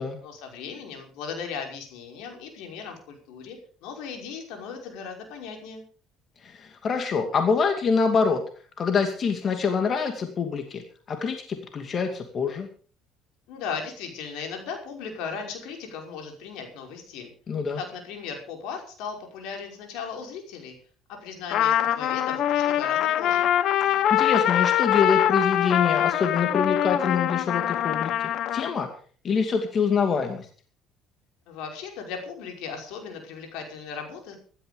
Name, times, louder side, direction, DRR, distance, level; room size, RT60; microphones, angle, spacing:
voice 1, 0.2-5.8 13.5-17.3 17.8-20.7 21.1-23.5 31.5-34.4, left 6 dB, 80° left, 3 dB, 5.5 m, -37 dB
voice 2, 6.4-8.4 8.8-10.8 11.1-12.7 17.5-17.8 23.8-28.1 28.5-28.9 29.2-30.5, left 5 dB, 40° left, 6 dB, 2.5 m, -25 dB
Trumpet, 21.5-28.7, left 11 dB, 65° left, 1.0 m, -23 dB
16.0 x 12.5 x 5.3 m, 0.42 s
cardioid pair, 105°, 0 cm